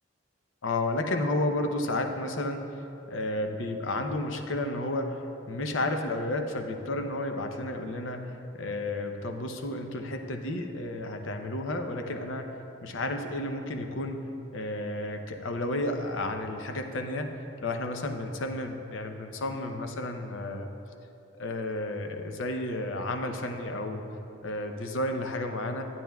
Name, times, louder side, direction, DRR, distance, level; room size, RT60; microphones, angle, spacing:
voice 1, 0.6-17.3 17.6-20.7 21.4-24.0 24.4-25.8, left 2 dB, 85° left, 5 dB, 0.7 m, -32 dB
11.0 x 8.8 x 2.3 m, 2.7 s
head